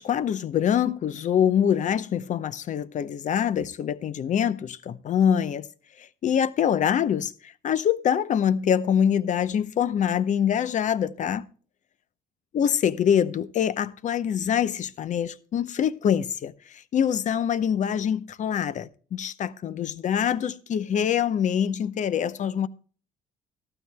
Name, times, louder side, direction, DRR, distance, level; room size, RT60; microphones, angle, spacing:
voice 1, 0.0-5.7 6.2-11.5 12.5-16.5 16.9-22.7, left 8 dB, 45° left, 0.7 m, -24 dB
15.0 x 12.5 x 2.2 m
cardioid pair, 110°, 17 cm